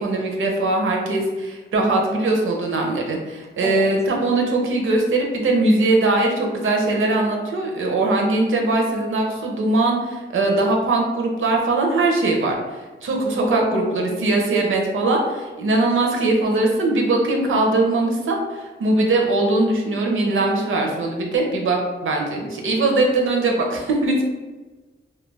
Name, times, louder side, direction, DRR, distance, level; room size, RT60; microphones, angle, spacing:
voice 1, 0.0-24.2, right 2 dB, 75° right, 1 dB, 0.5 m, -21 dB
voice 2, 13.4-14.2, left 1 dB, 15° left, 1 dB, 0.3 m, -27 dB
2.3 x 2.2 x 3.2 m, 1.3 s
wide cardioid pair, 90°, 21 cm